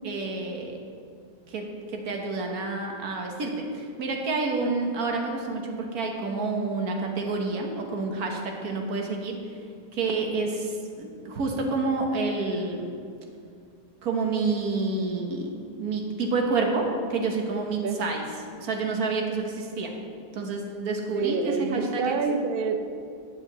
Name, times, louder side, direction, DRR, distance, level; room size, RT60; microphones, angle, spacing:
voice 1, 0.0-0.8 1.5-9.4 9.9-12.9 14.0-18.2 18.6-19.9 20.3-22.2, right 3 dB, 65° right, 2 dB, 1.6 m, -29 dB
voice 2, 21.1-22.8, right 5 dB, 80° right, 7 dB, 0.5 m, -27 dB
9.0 x 5.0 x 7.8 m, 2.3 s
omnidirectional pair, 1.8 m